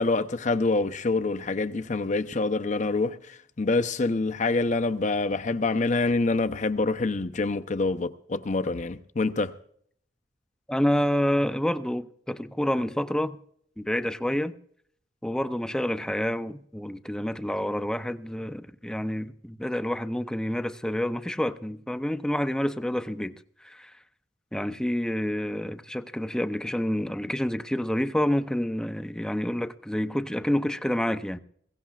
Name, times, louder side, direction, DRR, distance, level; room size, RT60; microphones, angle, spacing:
voice 1, 0.0-3.2 3.6-9.5, left 3 dB, 45° left, 0.7 m, -26 dB
voice 2, 10.7-13.4 13.8-14.5 15.2-23.4 23.6-23.9 24.5-31.4, equal, 5° left, 0.5 m, -28 dB
21.5 x 16.5 x 2.4 m
head